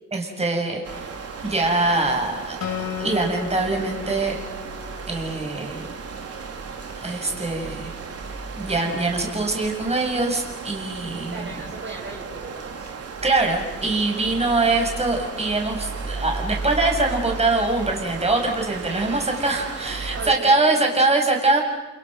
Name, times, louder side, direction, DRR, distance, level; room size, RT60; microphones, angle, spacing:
voice 1, 0.1-4.4 5.1-5.9 7.0-7.9 8.6-11.5 13.2-21.6, right 2 dB, 20° right, 2 dB, 7.0 m, -23 dB
sound 1, 0.8-20.4, right 4 dB, 55° right, 3.7 m, -34 dB
Acoustic guitar, 2.6-6.0, left 10 dB, 65° left, 2.9 m, -35 dB
voice 2, 11.3-12.9 20.1-21.1, right 4 dB, 35° right, -2 dB, 6.1 m, -36 dB
29.5 x 28.5 x 6.7 m, 1.0 s
cardioid pair, 90°, 30 cm